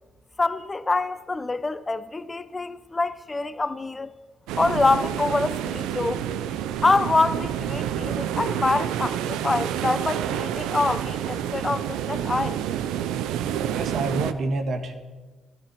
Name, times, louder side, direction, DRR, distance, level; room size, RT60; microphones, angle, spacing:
voice 1, 0.4-4.1 4.5-6.2 6.8-12.6, left 3 dB, 30° left, 0.9 m, -25 dB
sound 1, 4.5-14.3, right 10 dB, 80° right, 0.6 m, -28 dB
voice 2, 13.7-14.9, right 2 dB, 60° right, 1.8 m, -27 dB
13.5 x 13.5 x 6.1 m
hypercardioid pair, 55°, 0 cm